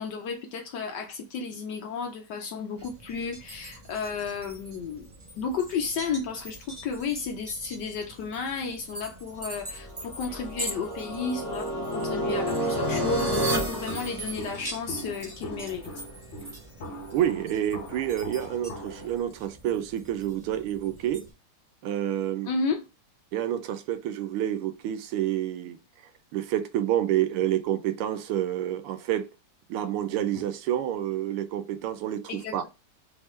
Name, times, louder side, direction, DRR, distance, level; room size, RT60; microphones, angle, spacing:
voice 1, 0.0-5.1 5.4-15.9 22.5-22.8 30.3-30.4 32.3-32.7, left 5 dB, 70° left, 1.0 m, -33 dB
sound 1, 2.8-21.3, right 1 dB, 50° right, 0.3 m, -44 dB
sound 2, 9.7-14.9, right 1 dB, 15° right, 0.9 m, -30 dB
Walk footsteps, 12.5-19.2, equal, 45° left, 1.0 m, -42 dB
voice 2, 17.1-21.3 21.8-22.5 23.3-25.8 26.3-29.3 29.7-32.7, right 11 dB, 90° right, 1.5 m, -28 dB
3.6 x 3.5 x 3.1 m
omnidirectional pair, 2.3 m